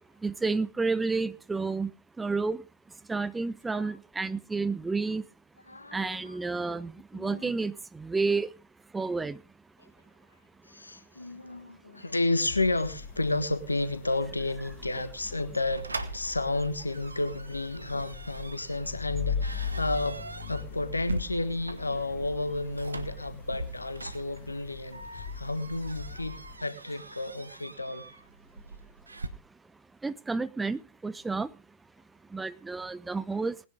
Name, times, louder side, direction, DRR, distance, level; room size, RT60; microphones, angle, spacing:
voice 1, 0.2-1.9 2.2-2.6 3.1-5.2 5.9-8.5 8.9-9.4 30.0-31.5 32.3-33.5, right 4 dB, 10° right, 0.8 m, -30 dB
voice 2, 5.7-6.8 7.1-7.5 9.8-9.9 10.6-20.2 20.5-28.0, left 2 dB, 90° left, 1.4 m, -32 dB
sound 1, 12.4-26.6, left 6 dB, 60° left, 2.0 m, -40 dB
sound 2, 15.7-29.3, right 2 dB, 85° right, 1.2 m, -42 dB
19.5 x 10.5 x 3.7 m
figure-of-eight pair, 100°, 0 cm